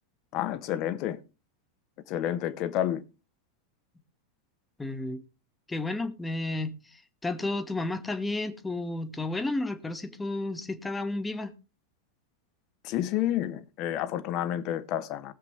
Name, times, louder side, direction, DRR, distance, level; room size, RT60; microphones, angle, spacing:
voice 1, 0.3-1.2 2.1-3.0 12.8-15.3, left 11 dB, 40° left, 1.0 m, -30 dB
voice 2, 4.8-5.2 5.7-6.8 7.2-11.5, left 2 dB, 10° left, 1.2 m, -32 dB
20.0 x 7.4 x 3.3 m
figure-of-eight pair, 90°, 0 cm